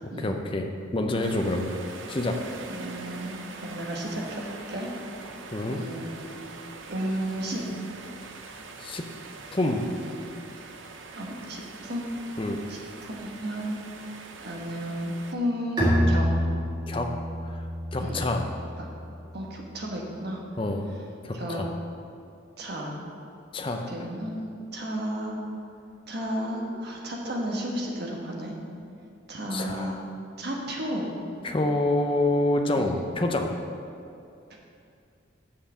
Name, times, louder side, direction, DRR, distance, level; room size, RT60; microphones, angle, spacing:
voice 1, 0.2-1.8 2.1-2.4 5.5-5.8 8.8-9.0 9.5-9.9 12.4-12.6 16.9-17.1 17.4-17.6 17.9-18.4 20.6-20.9 21.2-21.7 23.5-23.9 29.5-30.0 31.4-33.5, left 1 dB, 25° left, 3 dB, 0.6 m, -27 dB
sound 1, 1.2-15.3, right 4 dB, 75° right, 0.7 m, -43 dB
voice 2, 2.7-4.9 5.7-6.4 6.9-7.6 10.0-10.3 11.1-12.1 12.7-13.8 14.4-16.3 18.0-18.2 18.8-18.9 19.3-20.4 21.3-21.6 22.6-23.0 23.7-24.5 24.7-25.4 26.1-28.5 29.3-30.0 30.4-31.1 32.8-33.1 34.5-34.6, equal, 55° right, -1 dB, 1.3 m, -33 dB
Bowed string instrument, 15.8-19.2, equal, 20° right, 1.7 m, -27 dB
6.5 x 5.7 x 7.1 m, 2.5 s
head